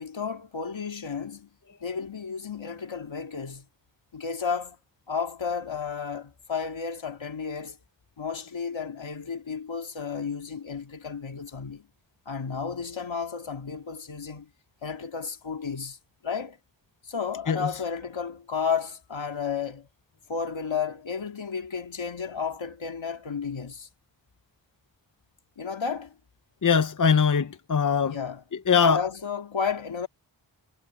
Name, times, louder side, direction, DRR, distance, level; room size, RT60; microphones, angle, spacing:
voice 1, 0.0-1.5 1.8-3.7 4.1-4.8 5.1-7.8 8.2-11.9 12.3-14.5 14.8-16.0 16.2-16.6 17.1-19.9 20.3-23.9 25.6-26.1 28.0-28.4 28.8-30.1, left 6 dB, 75° left, 2.4 m, -32 dB
voice 2, 26.6-28.2 28.7-29.0, left 6 dB, 40° left, 0.8 m, -22 dB
wide cardioid pair, 75°, 46 cm